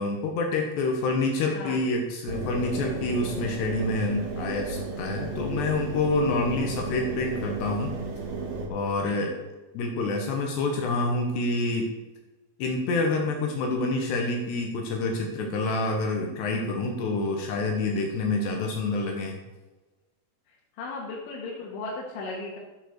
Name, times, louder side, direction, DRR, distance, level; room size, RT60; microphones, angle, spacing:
voice 1, 0.0-8.0 8.7-9.3 9.7-11.9 12.6-19.4, left 2 dB, 70° left, 2 dB, 3.3 m, -27 dB
Engine, 2.3-8.7, right 3 dB, 50° right, 2.2 m, -33 dB
voice 2, 9.0-9.4 20.8-22.6, left 3 dB, 85° left, -3 dB, 4.1 m, -36 dB
13.5 x 7.5 x 6.6 m, 1.1 s
omnidirectional pair, 5.3 m